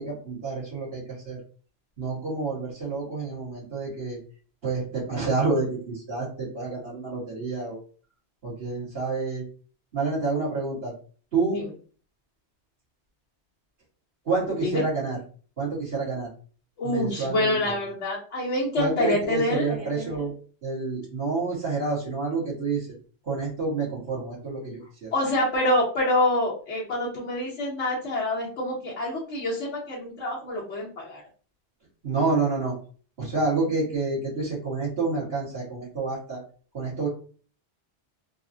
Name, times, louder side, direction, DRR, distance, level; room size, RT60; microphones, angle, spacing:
voice 1, 0.0-1.4 2.0-4.2 4.6-7.8 8.4-9.4 9.9-10.9 11.3-11.7 14.3-15.2 15.6-16.3 16.8-17.7 18.8-20.3 20.6-22.9 23.2-25.1 32.0-32.7 33.2-36.4 36.7-37.1, right 3 dB, 55° right, -10 dB, 1.6 m, -28 dB
voice 2, 16.8-19.7 25.1-31.2, left 1 dB, 75° left, -6 dB, 1.2 m, -26 dB
3.8 x 2.1 x 2.6 m, 0.42 s
omnidirectional pair, 1.2 m